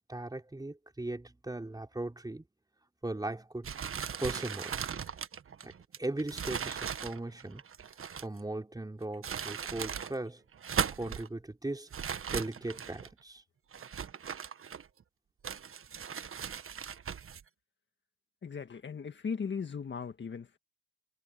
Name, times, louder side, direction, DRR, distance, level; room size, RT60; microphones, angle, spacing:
voice 1, 0.0-2.5 3.0-3.7 4.2-4.8 5.6-5.7 6.0-7.6 8.2-10.4 11.0-11.9 12.3-13.4, right 2 dB, 10° right, 3.8 m, -38 dB
sound 1, 3.6-8.4 9.0-10.1 10.5-11.3 11.9-13.1 13.7-15.0 15.4-17.4, right 7 dB, 30° right, 1.5 m, -38 dB
voice 2, 18.4-20.6, left 6 dB, 25° left, 1.6 m, -38 dB
supercardioid pair, 95°, 43 cm